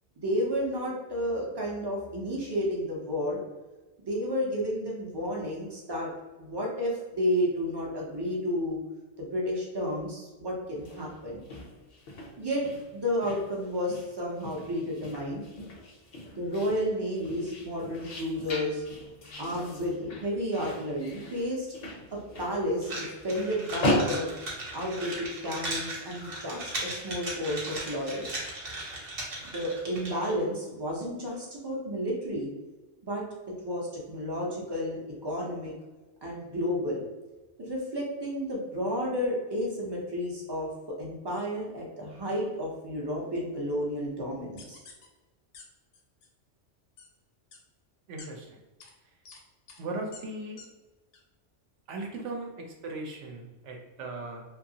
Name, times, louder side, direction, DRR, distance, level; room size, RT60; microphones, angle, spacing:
voice 1, 0.2-3.4 4.1-6.1 6.4-8.8 9.2-11.4 12.4-12.6 12.9-15.4 16.3-18.8 19.4-21.7 22.1-24.3 24.7-28.4 29.4-32.5 33.0-33.2 33.6-35.7 36.2-37.0 37.6-40.7 41.0-44.8, equal, 40° right, -3 dB, 0.4 m, -31 dB
sound 1, 10.8-25.2, left 1 dB, 55° left, 0.5 m, -37 dB
sound 2, 22.8-30.3, right 2 dB, 55° right, 0.9 m, -37 dB
sound 3, 44.6-45.1 45.5-45.6 45.9-46.3 47.0-47.1 47.5-47.6 48.2-48.3 48.8-48.9 49.3-49.4 49.7-49.8 50.1-50.2 50.6-50.7 51.1-51.2, left 5 dB, 80° left, 0.9 m, -48 dB
voice 2, 48.1-48.5 49.8-50.6 51.9-54.4, right 2 dB, 80° right, 1 dB, 0.9 m, -38 dB
2.7 x 2.3 x 2.7 m, 1.2 s
omnidirectional pair, 1.2 m